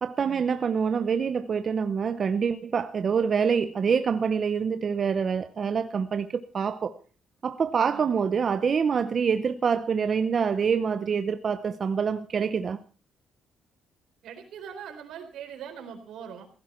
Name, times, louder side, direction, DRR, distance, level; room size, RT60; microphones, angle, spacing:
voice 1, 0.0-6.9 7.4-12.8, right 6 dB, 35° right, 0.7 m, -26 dB
voice 2, 14.2-16.5, right 8 dB, 80° right, 4.2 m, -42 dB
16.0 x 15.5 x 4.4 m
cardioid pair, 160°, 0 cm